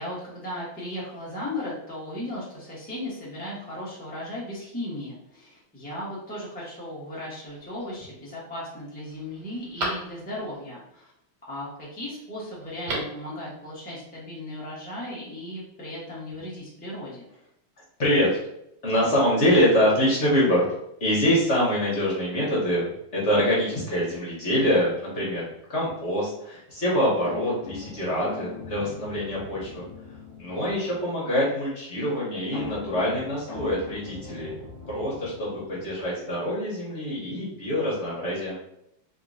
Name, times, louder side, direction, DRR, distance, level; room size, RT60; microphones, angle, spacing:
voice 1, 0.0-11.1 11.5-17.3 30.5-30.8, left 1 dB, 10° left, -7 dB, 0.4 m, -36 dB
Telephone, 7.5-8.1 8.6-8.7 9.1-10.6 12.6-13.3 13.5-13.6, right 2 dB, 85° right, 2.0 m, -35 dB
voice 2, 18.0-18.3 18.8-20.6 21.0-25.4 25.7-29.9 30.4-34.5 34.9-38.6, equal, 45° left, -6 dB, 1.0 m, -25 dB
sound 1, 27.2-31.0 32.5-36.1, left 4 dB, 65° left, 1.2 m, -41 dB
3.5 x 2.9 x 2.6 m, 0.78 s
omnidirectional pair, 2.3 m